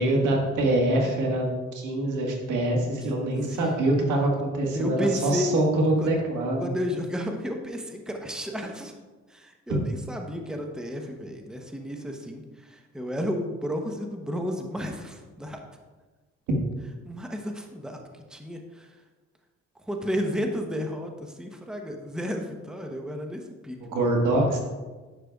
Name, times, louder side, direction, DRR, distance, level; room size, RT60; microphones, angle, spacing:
voice 1, 0.0-6.6 23.8-24.6, right 1 dB, 85° right, 0 dB, 1.6 m, -24 dB
voice 2, 3.0-3.6 4.7-5.5 6.0-6.1 6.6-8.9 9.3-15.6 17.0-18.0 18.3-18.9 19.9-24.1, equal, ahead, 3 dB, 0.8 m, -32 dB
10.0 x 6.6 x 2.3 m, 1.3 s
cardioid pair, 90°, 30 cm